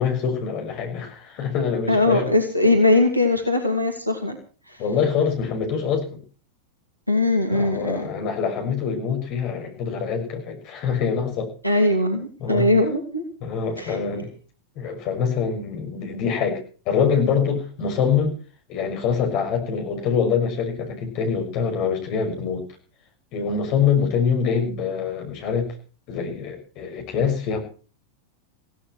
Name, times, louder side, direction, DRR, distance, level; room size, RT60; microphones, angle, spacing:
voice 1, 0.0-2.3 2.7-2.8 4.8-6.2 7.5-11.5 12.4-12.7 13.4-14.3 14.8-16.6 16.9-18.3 18.7-22.6 23.3-25.7 26.1-27.6, left 6 dB, 40° left, 4 dB, 6.3 m, -24 dB
voice 2, 1.9-4.4 4.7-4.8 7.1-8.0 11.6-13.2 13.8-14.0, left 2 dB, 90° left, 4 dB, 2.5 m, -20 dB
16.5 x 15.5 x 4.6 m, 0.39 s
figure-of-eight pair, 90°, 0 cm